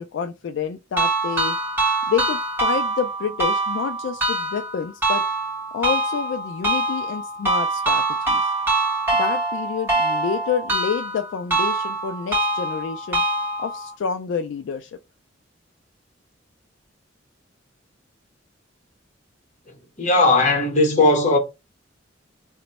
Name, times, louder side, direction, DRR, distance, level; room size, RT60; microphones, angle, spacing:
voice 1, 0.0-1.6 2.1-5.2 5.7-8.5 9.1-13.2 13.6-14.9, left 6 dB, 70° left, 0.3 m, -28 dB
sound 1, 1.0-13.9, right 2 dB, 10° right, 1.2 m, -24 dB
voice 2, 20.0-21.4, left 2 dB, 40° left, 0.9 m, -17 dB
2.9 x 2.2 x 4.0 m
head